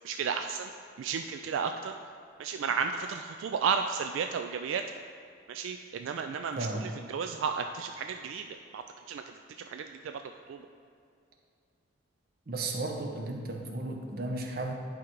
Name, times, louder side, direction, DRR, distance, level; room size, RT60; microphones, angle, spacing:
voice 1, 0.0-0.7 1.0-1.9 2.4-4.8 5.5-9.2 9.7-10.2 10.5-10.6, right 6 dB, 80° right, 6 dB, 0.3 m, -33 dB
voice 2, 12.5-14.7, right 2 dB, 50° right, 2 dB, 0.8 m, -34 dB
10.5 x 3.8 x 4.6 m, 2.3 s
head